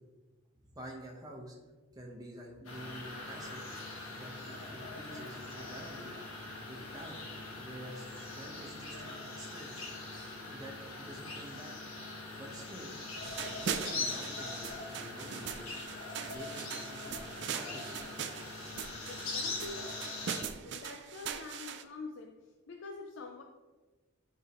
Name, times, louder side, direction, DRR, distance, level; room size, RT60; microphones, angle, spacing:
voice 1, 0.7-1.6 1.9-3.6 4.1-6.1 6.7-7.2 7.5-9.8 10.5-11.7 12.4-12.9 13.3-15.8 16.2-17.2 17.5-18.1, right 1 dB, 15° right, -1 dB, 1.0 m, -48 dB
sound 1, 2.6-20.4, left 3 dB, 80° left, 1.5 m, -42 dB
sound 2, 13.2-21.8, right 7 dB, 55° right, 0.4 m, -41 dB
voice 2, 19.1-20.0 20.6-23.4, left 3 dB, 60° left, 3 dB, 0.4 m, -46 dB
10.5 x 3.7 x 3.0 m, 1.2 s
head